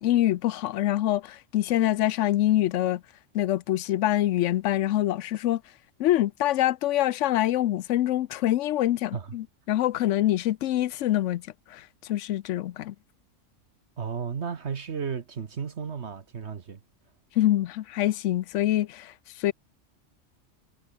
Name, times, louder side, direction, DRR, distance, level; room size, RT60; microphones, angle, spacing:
voice 1, 0.0-3.0 3.3-5.6 6.0-11.4 11.7-12.9 17.4-19.5, left 13 dB, 70° left, 0.9 m, -25 dB
voice 2, 14.0-16.8, right 6 dB, 60° right, 1.4 m, -33 dB
omnidirectional pair, 1.3 m